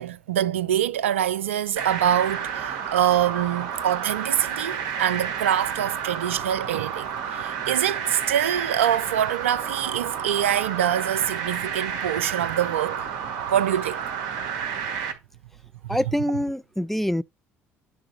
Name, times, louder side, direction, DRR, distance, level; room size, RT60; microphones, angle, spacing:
voice 1, 0.0-13.1 13.5-14.0 15.8-16.0, right 10 dB, 90° right, 0.4 m, -25 dB
sound 1, 1.8-15.1, right 7 dB, 70° right, 1.8 m, -31 dB
voice 2, 15.9-17.2, equal, 5° left, 0.4 m, -25 dB
9.5 x 3.8 x 4.3 m
hypercardioid pair, 60°, 7 cm